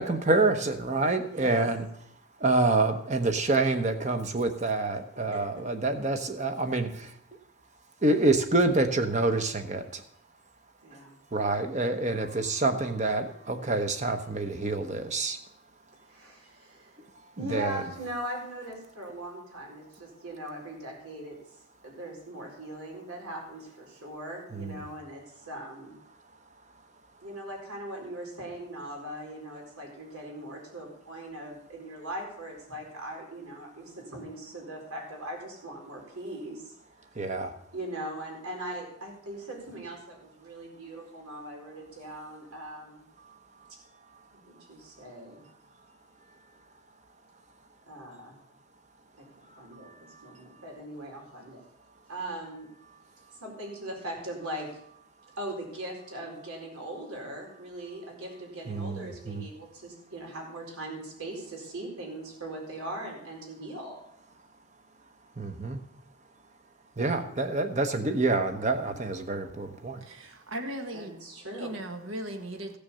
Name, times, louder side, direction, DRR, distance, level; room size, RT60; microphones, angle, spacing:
voice 1, 0.0-1.9 2.4-7.2 8.0-10.0 11.3-15.4 17.4-17.8 24.5-24.9 37.1-37.5 43.2-43.7 49.7-50.3 58.7-59.4 65.4-65.8 67.0-70.0, right 2 dB, 30° right, 7 dB, 1.0 m, -27 dB
voice 2, 1.3-1.6 10.8-11.1 16.1-17.0 17.4-21.4 21.8-26.0 27.2-36.8 37.7-43.1 44.3-45.4 47.9-48.4 49.2-49.9 50.2-51.6 52.1-52.7 53.4-54.7 55.4-64.0 67.0-67.5 70.9-71.7, right 1 dB, 85° right, 0 dB, 4.4 m, -40 dB
voice 3, 70.0-71.1 71.6-72.8, right 1 dB, 65° right, 5 dB, 1.6 m, -37 dB
15.5 x 6.8 x 6.9 m, 0.71 s
head